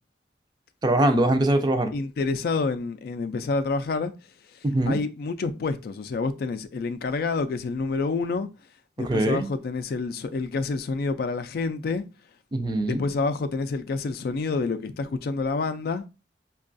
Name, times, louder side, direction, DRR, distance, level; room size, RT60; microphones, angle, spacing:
voice 1, 0.8-1.9 4.6-5.0 9.0-9.5 12.5-13.0, right 1 dB, 25° right, 0.4 m, -22 dB
voice 2, 1.9-4.1 4.9-8.5 9.0-12.0 12.9-16.1, left 4 dB, 60° left, 0.3 m, -28 dB
5.2 x 2.3 x 2.5 m
head